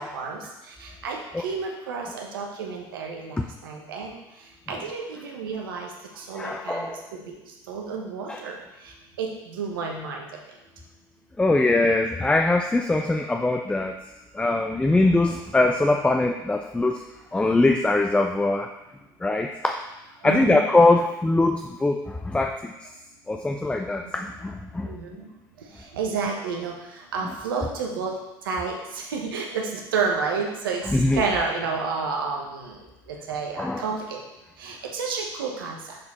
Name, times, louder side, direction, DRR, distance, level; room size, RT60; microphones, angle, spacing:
voice 1, 0.0-4.1 4.7-5.9 6.2-6.9 7.3-7.4 7.7-8.6 9.2-10.3 20.2-20.6 24.0-24.1 24.9-25.3 25.9-28.2 28.4-30.8 31.1-32.8 33.1-34.2 34.6-36.0, right 5 dB, 90° right, 1 dB, 1.1 m, -30 dB
voice 2, 6.3-7.0 8.3-8.4 11.4-13.9 14.3-17.1 17.3-18.7 19.2-19.8 20.2-22.9 23.3-24.9 30.9-31.2 33.6-33.8, left 2 dB, 10° left, 4 dB, 0.5 m, -22 dB
6.7 x 4.0 x 4.3 m, 0.99 s
hypercardioid pair, 75°, 11 cm